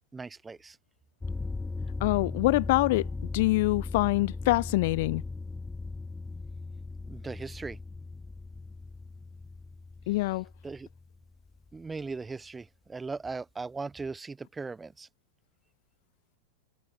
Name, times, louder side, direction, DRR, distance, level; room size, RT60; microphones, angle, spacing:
voice 1, 0.1-0.8 7.0-7.8 10.6-10.9 11.7-15.1, right 4 dB, 10° right, 5.0 m, -38 dB
sound 1, 1.2-12.0, left 3 dB, 10° left, 6.5 m, -38 dB
voice 2, 2.0-3.1 3.3-5.2 10.1-10.5, left 20 dB, 50° left, 1.2 m, -25 dB
figure-of-eight pair, 90°, 0 cm